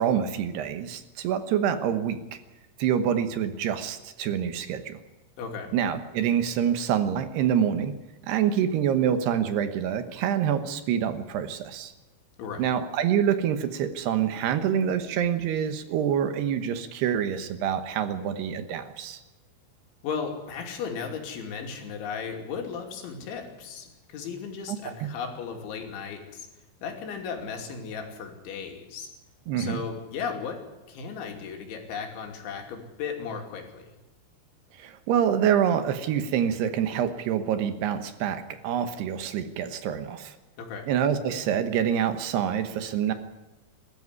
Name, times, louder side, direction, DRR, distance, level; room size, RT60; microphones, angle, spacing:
voice 1, 0.0-2.4 2.8-5.0 5.7-7.9 8.3-11.9 12.6-19.2 24.7-25.1 29.5-29.8 34.8-40.3 40.9-43.1, right 9 dB, 70° right, 9 dB, 3.0 m, -26 dB
voice 2, 5.4-5.7 12.4-12.7 20.0-26.5 26.8-29.1 29.6-33.9 40.6-40.9, left 6 dB, 90° left, 2 dB, 5.1 m, -36 dB
21.0 x 13.5 x 9.7 m, 1.1 s
omnidirectional pair, 5.2 m